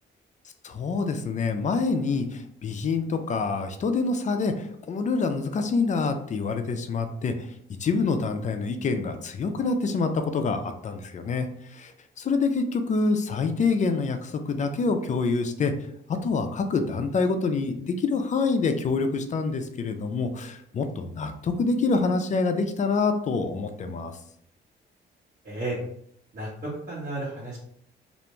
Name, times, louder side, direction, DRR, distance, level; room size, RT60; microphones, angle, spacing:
voice 1, 0.6-7.5 7.8-11.9 12.2-15.7 16.2-24.2, left 4 dB, 40° left, 7 dB, 0.4 m, -26 dB
voice 2, 25.4-25.8 26.3-27.6, right 2 dB, 45° right, -8 dB, 1.1 m, -33 dB
2.5 x 2.1 x 3.0 m, 0.68 s
cardioid pair, 90°, 20 cm